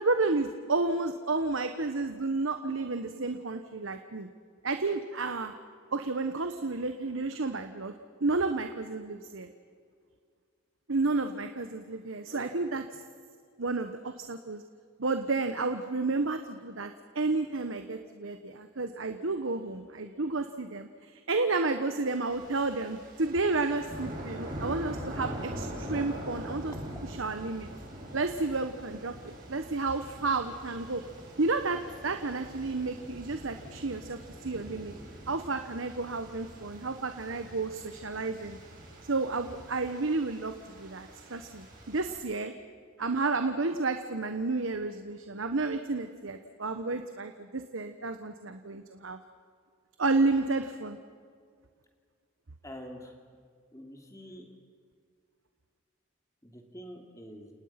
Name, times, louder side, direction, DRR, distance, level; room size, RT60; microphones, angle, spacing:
voice 1, 0.0-4.3 4.6-5.5 5.9-7.9 8.2-9.5 10.9-12.8 13.6-14.6 15.0-26.7 27.1-27.7 28.1-31.0 31.4-34.9 35.3-38.6 39.1-42.5 43.0-49.2 50.0-51.0, right 3 dB, 75° right, 7 dB, 1.2 m, -31 dB
sound 1, 22.3-42.2, equal, 40° right, 6.1 m, -43 dB
voice 2, 52.6-53.1 53.7-54.5 56.4-57.5, equal, 15° left, 2 dB, 2.9 m, -46 dB
30.0 x 18.5 x 5.9 m, 2.1 s
head